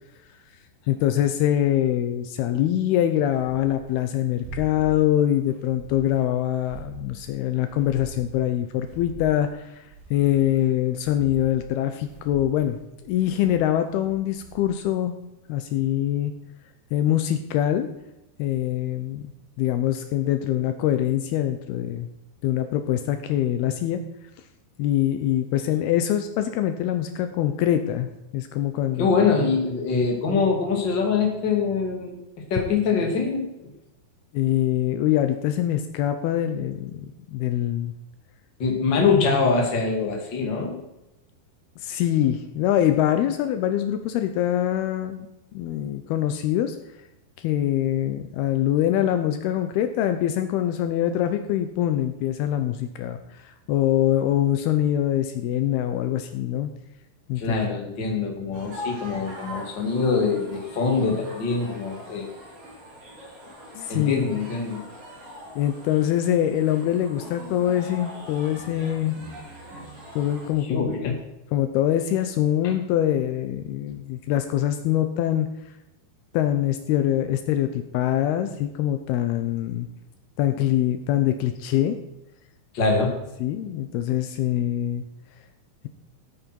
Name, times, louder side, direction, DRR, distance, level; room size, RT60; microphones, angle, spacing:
voice 1, 0.9-9.8 10.1-15.1 15.5-16.3 16.9-17.9 18.4-19.3 19.6-22.1 22.4-24.0 24.8-29.1 34.3-37.9 41.8-45.3 45.5-46.8 47.4-56.7 57.3-57.6 63.8-64.3 65.6-69.2 70.2-71.1 71.5-75.5 76.3-79.9 80.4-82.0 83.4-85.0, left 11 dB, 80° left, 8 dB, 2.6 m, -24 dB
sound 1, 3.1-4.0 4.3-5.1 5.5-7.3 7.6-9.6 9.8-14.8, right 3 dB, 85° right, 7.1 m, -43 dB
voice 2, 29.0-32.2 32.5-33.5 38.6-40.8 57.4-62.3 63.9-64.8 70.7-71.2 72.6-72.7 82.7-83.2, left 4 dB, 35° left, 1 dB, 2.4 m, -24 dB
sound 2, 58.5-70.5, left 1 dB, 55° right, 6.8 m, -42 dB
16.0 x 9.0 x 4.5 m, 0.89 s
omnidirectional pair, 4.7 m